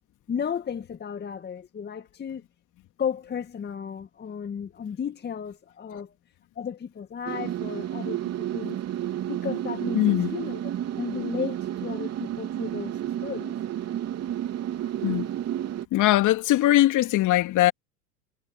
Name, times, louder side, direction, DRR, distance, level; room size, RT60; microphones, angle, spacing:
voice 1, 0.3-2.4 3.0-6.1 6.6-8.8 9.3-10.6 11.0-13.5, left 7 dB, 20° left, 2.1 m, -34 dB
sound 1, 7.3-15.9, right 11 dB, 30° right, 3.3 m, -31 dB
voice 2, 9.9-10.3 15.0-15.3 15.9-17.7, left 15 dB, 40° left, 3.0 m, -21 dB
hypercardioid pair, 90°, 47 cm